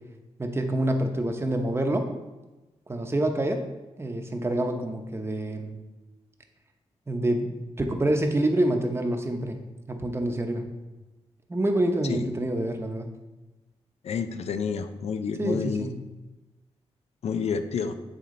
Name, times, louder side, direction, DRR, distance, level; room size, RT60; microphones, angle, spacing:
voice 1, 0.4-2.1 2.9-3.7 4.0-5.8 7.1-7.5 7.8-9.6 9.9-10.6 11.5-13.1 15.4-16.0, right 1 dB, 25° right, 4 dB, 0.8 m, -26 dB
voice 2, 14.0-15.9 17.2-18.0, left 6 dB, 75° left, 9 dB, 0.5 m, -29 dB
8.0 x 4.3 x 3.8 m, 1.1 s
wide cardioid pair, 95°, 11 cm